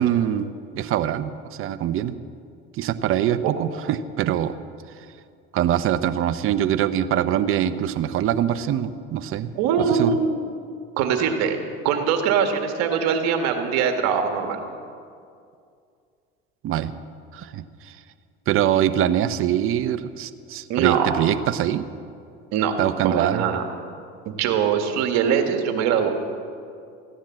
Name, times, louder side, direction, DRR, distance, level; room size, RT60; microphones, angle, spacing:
voice 1, 0.0-2.1 2.7-4.6 5.5-9.5 9.9-10.1 16.6-16.9 17.3-18.0 18.5-21.9 22.8-23.5, right 11 dB, 45° right, 12 dB, 0.8 m, -23 dB
voice 2, 9.6-10.5 11.0-11.6 11.8-14.6 20.7-21.1 22.5-22.7 23.0-23.6 24.3-26.1, right 7 dB, 65° right, 6 dB, 1.8 m, -22 dB
15.0 x 10.0 x 7.5 m, 2.4 s
supercardioid pair, 95°, 29 cm